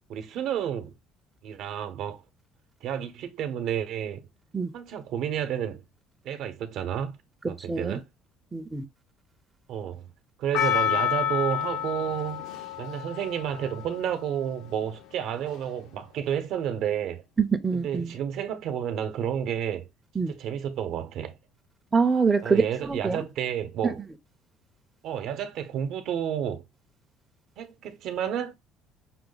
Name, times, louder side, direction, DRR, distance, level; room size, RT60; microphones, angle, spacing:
voice 1, 0.1-0.9 1.4-2.2 2.8-4.3 4.7-5.8 6.2-7.2 7.5-8.1 9.7-10.1 10.4-12.5 12.8-17.2 17.7-19.9 20.3-21.4 22.4-24.0 25.0-26.6 27.6-28.5, right 9 dB, 65° right, 0.8 m, -31 dB
voice 2, 8.5-8.8 17.4-18.1 20.2-20.3 21.9-22.6 22.9-23.2, right 5 dB, 15° right, 0.6 m, -24 dB
Percussion, 10.5-14.9 15.5-15.6, left 10 dB, 85° left, 1.1 m, -29 dB
5.8 x 2.1 x 3.9 m
cardioid pair, 140°, 0 cm